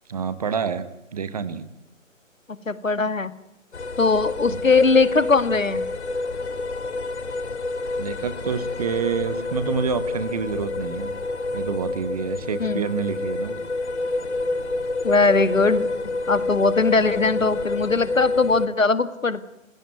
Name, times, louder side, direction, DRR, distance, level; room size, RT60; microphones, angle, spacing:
voice 1, 0.1-0.9 1.1-1.7 4.4-4.6 8.0-11.1 11.5-13.6, right 6 dB, 30° right, 13 dB, 1.4 m, -27 dB
voice 2, 2.7-3.3 4.0-5.8 12.6-12.8 15.0-15.9 16.3-19.5, left 4 dB, 75° left, 14 dB, 2.0 m, -20 dB
sound 1, 3.7-18.7, left 2 dB, 55° left, 2.1 m, -28 dB
29.5 x 16.5 x 9.5 m, 0.87 s
figure-of-eight pair, 150°, 40 cm